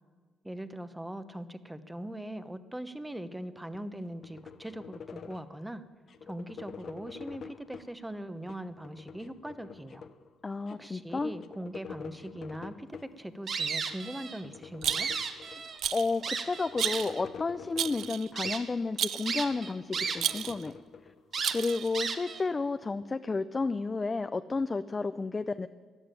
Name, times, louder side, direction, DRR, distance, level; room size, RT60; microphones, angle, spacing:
voice 1, 0.4-5.8 6.2-10.1 10.8-15.1, right 1 dB, 10° right, 12 dB, 1.0 m, -41 dB
sound 1, 3.7-5.6 6.1-7.9 8.4-10.3 10.7-10.8 11.0-13.1 13.7-14.0 14.3-15.9 16.4-18.8 19.2-21.5, left 6 dB, 55° left, 1.0 m, -47 dB
voice 2, 10.4-11.3 15.9-20.7 21.5-25.7, left 3 dB, 30° left, 11 dB, 0.5 m, -32 dB
sound 2, 13.5-14.4 14.7-15.8 16.2-17.2 17.8-17.9 18.4-18.6 19.3-20.4 20.7-20.8 21.3-22.4, right 5 dB, 55° right, 1.7 m, -34 dB
Rattle, 14.8-15.3 15.8-16.2 16.8-17.2 17.8-18.3 19.0-19.4 20.2-20.7 21.4-22.0, right 10 dB, 75° right, 0.5 m, -32 dB
13.5 x 11.0 x 9.1 m, 1.5 s
cardioid pair, 90°, 0 cm